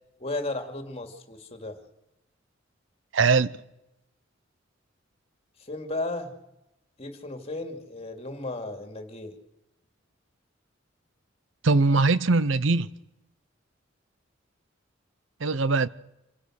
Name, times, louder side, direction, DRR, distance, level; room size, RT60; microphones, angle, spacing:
voice 1, 0.2-1.8 5.6-6.4 7.0-9.3, left 2 dB, 30° left, 2.5 m, -34 dB
voice 2, 3.1-3.5 11.6-12.9 15.4-15.9, right 3 dB, 70° right, 0.7 m, -21 dB
27.0 x 16.0 x 6.5 m
head